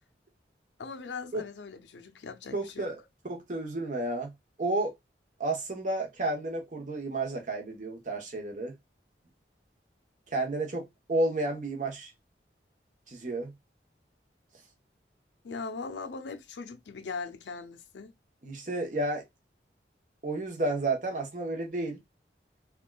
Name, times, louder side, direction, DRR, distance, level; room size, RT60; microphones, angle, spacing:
voice 1, 0.8-2.9 15.4-18.1, left 4 dB, 85° left, 0.5 m, -40 dB
voice 2, 2.5-4.3 4.6-4.9 5.4-8.7 10.3-12.1 13.1-13.5 18.4-19.2 20.2-22.0, right 2 dB, 45° right, 0.9 m, -31 dB
3.5 x 2.3 x 2.2 m
head